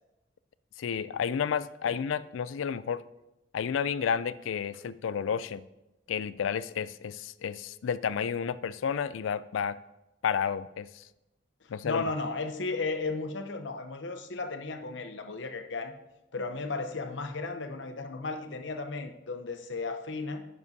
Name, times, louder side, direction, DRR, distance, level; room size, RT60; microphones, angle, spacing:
voice 1, 0.8-3.0 3.5-5.6 6.1-9.8 10.2-11.0 11.7-12.0, left 7 dB, 90° left, 17 dB, 0.4 m, -31 dB
voice 2, 11.8-15.9 16.3-20.5, left 3 dB, 70° left, 7 dB, 0.8 m, -34 dB
11.0 x 9.6 x 2.8 m, 0.97 s
head